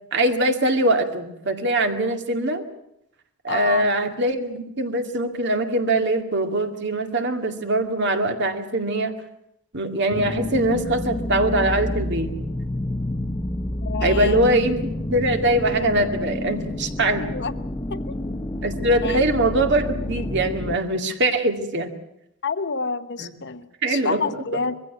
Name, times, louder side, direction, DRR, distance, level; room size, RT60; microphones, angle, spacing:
voice 1, 0.1-2.6 3.4-9.2 9.7-12.3 14.0-17.3 18.6-21.9 23.2-23.3 23.8-24.2, right 1 dB, 55° right, 2.3 m, -22 dB
voice 2, 3.5-3.9 13.8-14.6 17.1-17.6 17.9-18.2 19.0-19.2 22.4-24.8, left 4 dB, 55° left, 1.1 m, -28 dB
sound 1, 10.1-20.8, left 1 dB, 15° left, 0.9 m, -29 dB
22.0 x 16.0 x 9.5 m
head